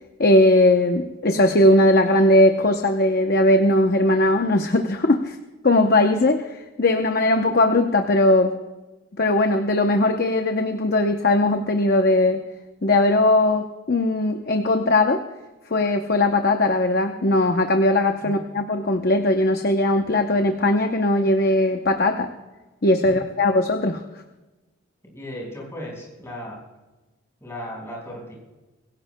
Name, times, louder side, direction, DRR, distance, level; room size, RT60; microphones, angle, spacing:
voice 1, 0.2-5.4 5.6-8.5 9.2-12.4 12.8-15.2 15.7-22.3 22.8-24.0, left 1 dB, 45° left, 5 dB, 0.7 m, -19 dB
voice 2, 25.0-26.6 27.4-28.4, equal, 15° left, -3 dB, 4.7 m, -36 dB
24.5 x 16.5 x 2.2 m, 1.1 s
head